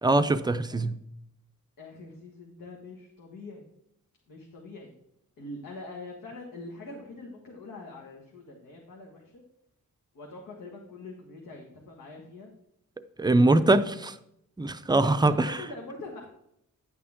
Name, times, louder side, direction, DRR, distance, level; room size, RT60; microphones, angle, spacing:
voice 1, 0.0-1.0 13.2-14.2 14.6-15.6, right 2 dB, 15° right, 11 dB, 0.4 m, -22 dB
voice 2, 1.8-3.6 4.3-4.9 5.4-9.4 10.1-12.5 13.3-13.7 15.0-16.3, left 2 dB, 90° left, 0 dB, 1.6 m, -43 dB
10.5 x 8.6 x 3.6 m, 0.77 s
wide cardioid pair, 145°, 32 cm